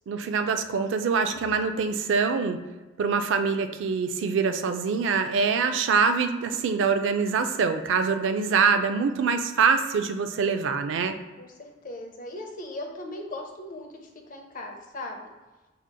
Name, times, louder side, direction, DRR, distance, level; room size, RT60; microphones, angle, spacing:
voice 1, 0.1-2.6 3.0-11.1, right 5 dB, 65° right, 8 dB, 0.3 m, -24 dB
voice 2, 11.4-14.0 14.3-15.3, left 1 dB, 45° left, 2 dB, 0.5 m, -38 dB
4.8 x 2.9 x 2.2 m, 1.2 s
head